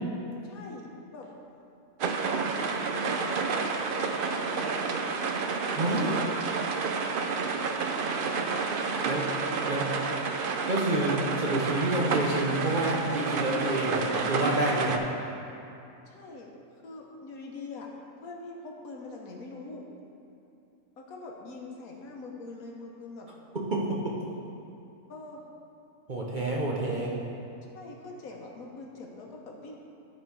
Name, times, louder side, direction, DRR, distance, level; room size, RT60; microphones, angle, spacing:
voice 1, 0.4-1.3 2.2-3.3 4.3-5.0 7.4-7.7 16.1-16.5 16.8-17.9 18.2-19.9 21.0-23.3 25.1-25.5 27.7-29.8, left 3 dB, 75° left, 0 dB, 1.5 m, -43 dB
sound 1, 2.0-15.0, right 4 dB, 60° right, 0.5 m, -30 dB
voice 2, 5.7-6.3 8.2-8.3 9.0-9.3 9.7-10.0 10.7-15.0 23.5-24.2 26.1-27.2, right 1 dB, 40° right, -3 dB, 0.8 m, -28 dB
12.5 x 4.5 x 4.7 m, 2.7 s
omnidirectional pair, 1.5 m